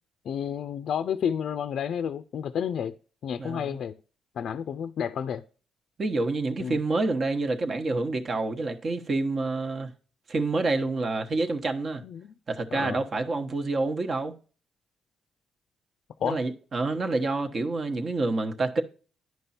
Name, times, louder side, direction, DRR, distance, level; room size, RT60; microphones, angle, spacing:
voice 1, 0.2-2.9 3.2-4.0 4.4-5.4 6.6-6.8 12.0-12.3 12.7-13.0 16.2-16.4, left 8 dB, 65° left, 0.4 m, -30 dB
voice 2, 3.4-3.7 6.0-9.9 10.3-12.0 12.5-14.3 16.2-18.8, right 3 dB, 45° right, 1.1 m, -28 dB
10.5 x 5.3 x 4.2 m
cardioid pair, 90°, 0 cm